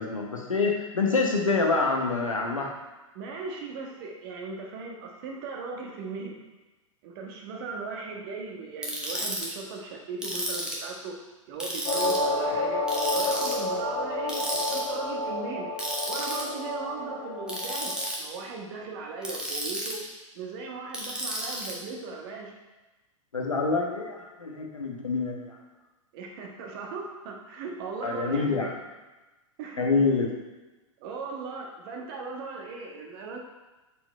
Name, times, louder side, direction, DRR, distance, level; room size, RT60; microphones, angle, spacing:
voice 1, 0.0-2.7 23.3-25.5 28.0-28.7 29.8-30.3, left 4 dB, 80° left, 0 dB, 1.4 m, -26 dB
voice 2, 3.1-6.4 7.0-11.1 11.5-12.8 13.1-15.7 16.1-20.0 20.3-22.5 26.1-28.7 29.6-30.0 31.0-33.4, right 4 dB, 45° right, 0 dB, 1.4 m, -38 dB
Ratchet pawl, 8.8-9.5 10.2-10.9 11.6-12.2 12.9-13.6 14.3-14.8 15.8-16.4 17.5-18.2 19.2-20.0 20.9-21.7, right 1 dB, 5° right, 1.6 m, -32 dB
sound 1, 11.8-18.1, left 1 dB, 40° left, 1.8 m, -30 dB
7.2 x 5.1 x 4.4 m, 1.1 s
figure-of-eight pair, 100°, 17 cm